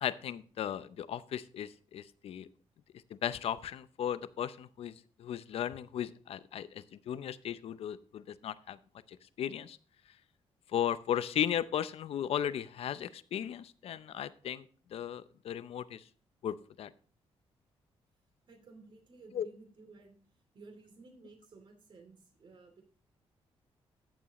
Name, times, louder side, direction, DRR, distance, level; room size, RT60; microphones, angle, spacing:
voice 1, 0.0-2.5 3.2-4.9 5.2-8.8 9.1-9.8 10.7-14.6 14.9-16.0 16.4-16.9 19.3-19.5, left 10 dB, 70° left, 15 dB, 0.6 m, -36 dB
voice 2, 18.4-20.2 20.5-22.8, right 3 dB, 50° right, 4 dB, 2.9 m, -55 dB
13.5 x 7.3 x 3.0 m, 0.42 s
cardioid pair, 110°, 11 cm